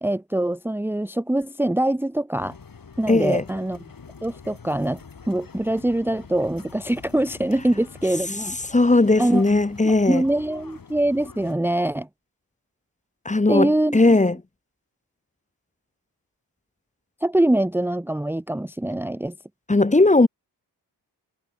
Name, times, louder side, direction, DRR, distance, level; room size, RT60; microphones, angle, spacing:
voice 1, 0.0-2.6 3.0-3.8 4.2-5.0 5.3-8.6 9.2-9.4 9.8-12.1 13.5-14.2 17.2-19.3, right 1 dB, 5° right, 0.8 m, -23 dB
sound 1, 2.4-11.6, left 5 dB, 50° left, 5.6 m, -45 dB
voice 2, 3.1-3.4 8.7-10.2 13.2-14.4 19.7-20.3, left 2 dB, 15° left, 1.2 m, -18 dB
cardioid pair, 60°, 42 cm